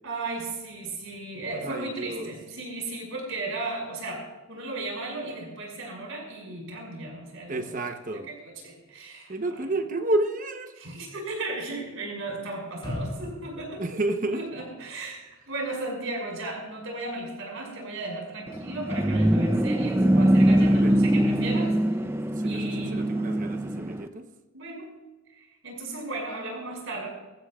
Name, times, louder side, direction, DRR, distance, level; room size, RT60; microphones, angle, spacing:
voice 1, 0.0-7.7 8.1-9.6 10.7-13.8 14.3-21.7 22.4-23.0 24.5-24.9 25.3-27.1, right 2 dB, 65° right, 0 dB, 5.7 m, -35 dB
voice 2, 1.6-2.3 7.5-8.3 9.3-10.7 13.8-14.4 20.6-20.9 22.4-24.2, right 2 dB, 35° right, 6 dB, 1.0 m, -30 dB
sound 1, 12.8-15.0 15.3-15.4, left 1 dB, 25° left, 3.9 m, -38 dB
sound 2, 18.5-24.1, right 1 dB, 10° right, 0.5 m, -22 dB
21.0 x 15.0 x 2.4 m, 1.2 s
head